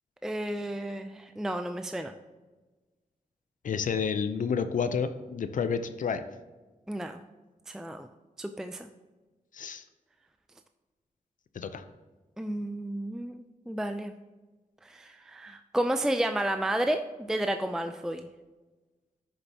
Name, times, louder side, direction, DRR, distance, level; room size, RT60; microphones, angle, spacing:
voice 1, 0.2-2.1 6.9-7.2 7.7-8.1 8.4-8.9 12.4-14.1 14.8-18.3, right 1 dB, 5° right, 7 dB, 0.4 m, -32 dB
voice 2, 3.6-6.2 9.5-9.8 11.5-11.8, left 6 dB, 70° left, 10 dB, 0.6 m, -30 dB
11.5 x 6.7 x 2.8 m, 1.2 s
cardioid pair, 85°, 14 cm